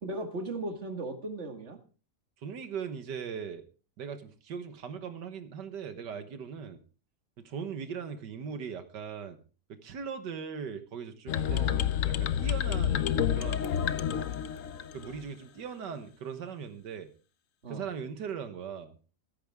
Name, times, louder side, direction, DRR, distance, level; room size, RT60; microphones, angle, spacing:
voice 1, 0.0-1.8 11.5-11.8 17.6-17.9, right 2 dB, 45° right, 5 dB, 2.2 m, -37 dB
voice 2, 2.4-3.6 4.0-6.8 7.4-9.4 9.7-13.8 14.9-17.1 17.7-18.9, right 6 dB, 90° right, 9 dB, 1.9 m, -39 dB
sound 1, 11.3-15.2, left 9 dB, 60° left, 1.0 m, -29 dB
15.0 x 14.5 x 3.5 m, 0.36 s
omnidirectional pair, 1.8 m